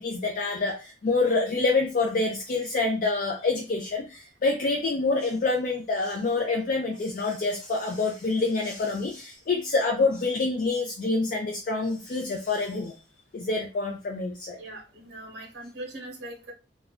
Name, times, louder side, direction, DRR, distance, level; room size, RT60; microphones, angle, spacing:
voice 1, 0.0-12.9 13.3-14.6, left 3 dB, 50° left, 2 dB, 0.4 m, -27 dB
voice 2, 14.6-16.5, right 1 dB, 65° right, 0 dB, 0.8 m, -41 dB
2.4 x 2.1 x 3.5 m, 0.31 s
head